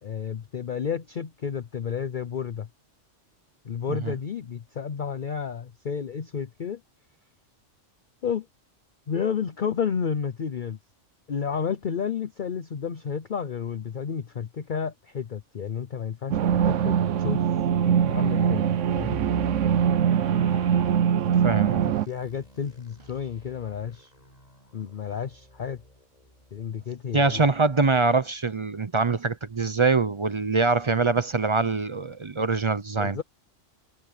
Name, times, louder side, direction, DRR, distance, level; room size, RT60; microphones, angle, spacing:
voice 1, 0.0-2.7 3.6-6.8 8.2-8.5 9.1-10.8 11.3-17.5 17.8-18.7 18.9-19.2 21.7-24.1 24.7-25.8 26.5-27.4 33.0-33.2, left 7 dB, 45° left, 0.8 m, -31 dB
sound 1, 16.3-22.1, right 8 dB, 75° right, 1.0 m, -22 dB
sound 2, 19.0-28.7 29.0-29.1 29.6-29.9, left 1 dB, 30° left, 8.2 m, -45 dB
voice 2, 21.4-21.8 27.1-33.2, right 4 dB, 35° right, 0.5 m, -24 dB
omnidirectional pair, 1.3 m